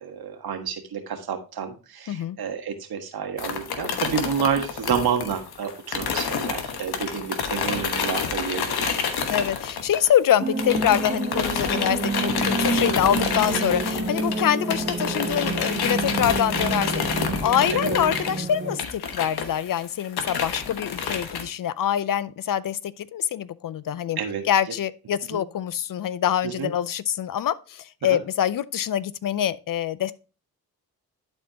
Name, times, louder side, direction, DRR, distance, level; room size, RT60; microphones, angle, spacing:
voice 1, 0.0-9.3 12.7-12.8 17.7-18.0 24.2-24.4 25.3-25.4 26.4-26.7 28.1-28.2, right 7 dB, 75° right, 1.5 m, -29 dB
sound 1, 3.4-10.3 10.6-21.4, left 6 dB, 85° left, 1.1 m, -29 dB
voice 2, 9.3-24.2 24.5-30.1, left 10 dB, 60° left, 0.6 m, -25 dB
sound 2, 10.4-18.8, right 3 dB, 25° right, 1.5 m, -28 dB
11.5 x 4.4 x 2.9 m
cardioid pair, 60°, 37 cm